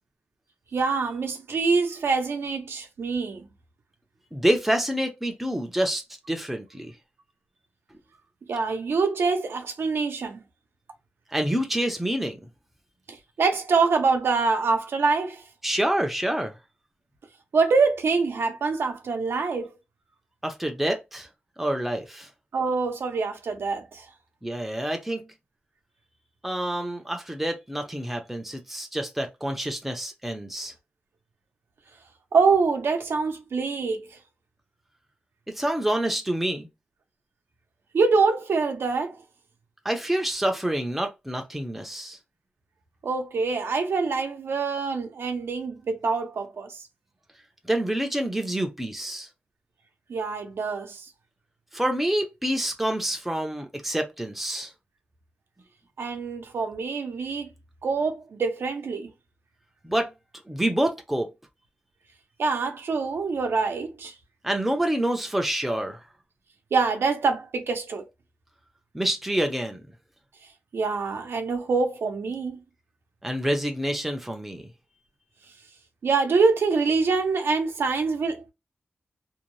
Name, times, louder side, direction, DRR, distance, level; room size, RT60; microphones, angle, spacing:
voice 1, 0.7-3.4 8.5-10.4 13.4-15.4 17.5-19.7 22.5-24.1 32.3-34.1 37.9-39.2 43.0-46.8 50.1-51.1 56.0-57.5 57.8-59.1 62.4-64.1 66.7-68.0 70.7-72.6 76.0-78.5, right 4 dB, 80° right, 0.6 m, -25 dB
voice 2, 4.3-6.0 6.3-6.9 11.3-12.4 15.6-16.5 20.4-21.3 21.6-22.3 24.4-25.3 26.4-30.7 35.5-36.7 39.8-42.2 47.6-49.3 51.7-54.7 59.8-60.1 60.5-61.3 64.4-66.0 68.9-69.8 73.2-74.6, right 1 dB, 5° right, 0.5 m, -27 dB
2.6 x 2.1 x 3.0 m
wide cardioid pair, 170°, 4 cm